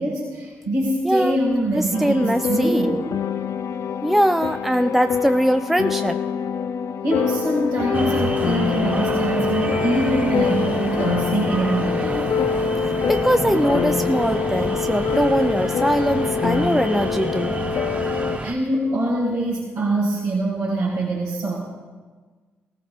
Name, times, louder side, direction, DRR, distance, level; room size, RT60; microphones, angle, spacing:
voice 1, 0.0-3.0 7.0-12.3 18.4-21.6, right 1 dB, 80° right, -10 dB, 4.0 m, -24 dB
voice 2, 1.0-1.4 1.7-3.0 4.0-6.2 13.1-17.6, equal, 5° right, 8 dB, 0.4 m, -21 dB
sound 1, 1.9-18.4, left 6 dB, 60° left, 0.5 m, -25 dB
sound 2, 7.9-18.5, right 2 dB, 25° right, 1.3 m, -29 dB
18.0 x 15.0 x 2.4 m, 1.4 s
hypercardioid pair, 40°, 6 cm